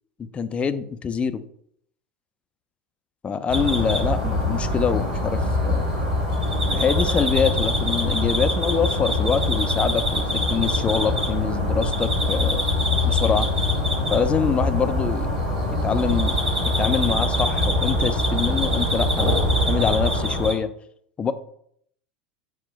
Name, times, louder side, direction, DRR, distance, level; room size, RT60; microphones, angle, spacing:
voice 1, 0.3-1.4 3.2-5.9 6.7-12.6 13.0-13.5 14.1-15.3 15.8-16.4 16.8-20.7 21.2-21.3, left 6 dB, 20° left, 12 dB, 0.3 m, -25 dB
sound 1, 3.5-20.5, left 1 dB, 75° right, 1.7 m, -23 dB
4.1 x 2.2 x 4.6 m, 0.67 s
hypercardioid pair, 85°, 5 cm